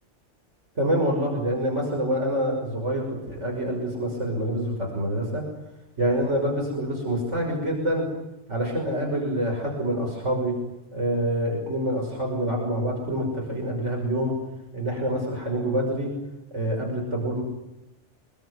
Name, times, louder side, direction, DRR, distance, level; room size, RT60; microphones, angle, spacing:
voice 1, 0.8-5.4 6.0-8.1 8.5-10.5 10.9-14.3 14.7-16.1 16.5-17.4, right 1 dB, 90° right, 0 dB, 6.4 m, -26 dB
27.0 x 22.0 x 9.9 m, 0.91 s
omnidirectional pair, 1.2 m